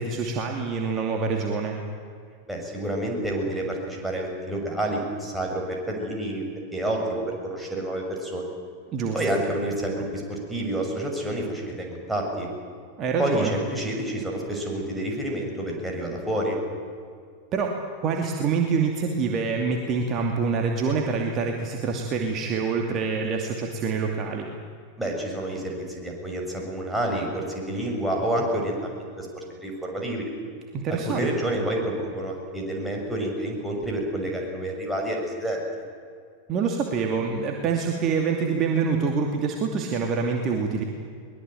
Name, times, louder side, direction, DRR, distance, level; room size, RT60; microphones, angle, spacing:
voice 1, 0.0-1.8 8.9-9.2 13.0-13.5 17.5-24.5 30.7-31.3 36.5-40.8, right 5 dB, 30° right, 2 dB, 2.5 m, -26 dB
voice 2, 2.5-6.5 6.7-8.4 9.1-12.5 13.2-16.6 25.0-29.3 29.6-30.3 30.9-35.6, right 1 dB, 5° right, -1 dB, 6.4 m, -29 dB
22.5 x 21.0 x 9.1 m, 2.2 s
figure-of-eight pair, 90°, 0 cm